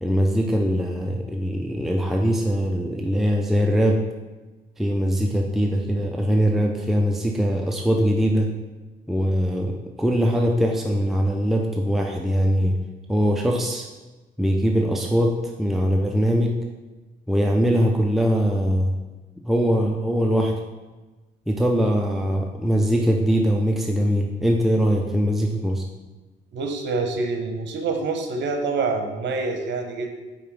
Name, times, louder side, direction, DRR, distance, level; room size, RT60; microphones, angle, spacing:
voice 1, 0.0-4.0 4.8-8.5 9.1-12.7 13.1-13.9 14.4-16.5 17.3-18.9 19.4-20.5 21.5-25.8, equal, ahead, 1 dB, 0.6 m, -22 dB
voice 2, 26.5-30.2, right 3 dB, 65° right, 5 dB, 1.1 m, -26 dB
5.5 x 4.3 x 5.3 m, 1.2 s
cardioid pair, 90°, 20 cm